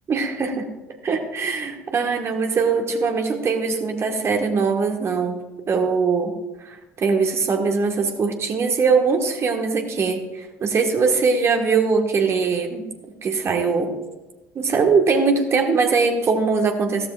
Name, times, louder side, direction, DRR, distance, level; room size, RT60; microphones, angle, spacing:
voice 1, 0.1-0.7 1.0-5.4 5.7-6.3 6.6-12.9 13.2-13.9 14.5-17.1, right 4 dB, 35° right, 4 dB, 1.5 m, -21 dB
14.5 x 13.0 x 2.5 m, 1.1 s
figure-of-eight pair, 60°, 8 cm